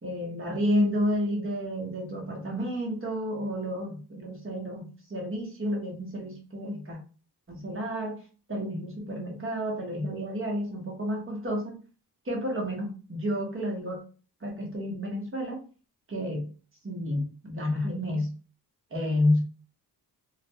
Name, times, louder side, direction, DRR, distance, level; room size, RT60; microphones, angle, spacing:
voice 1, 0.0-7.0 7.5-8.2 8.5-11.8 12.2-14.0 14.4-15.6 16.1-16.5 16.8-18.3 18.9-19.4, equal, 30° right, 0 dB, 1.0 m, -30 dB
2.5 x 2.2 x 2.7 m, 0.37 s
wide cardioid pair, 115°, 40 cm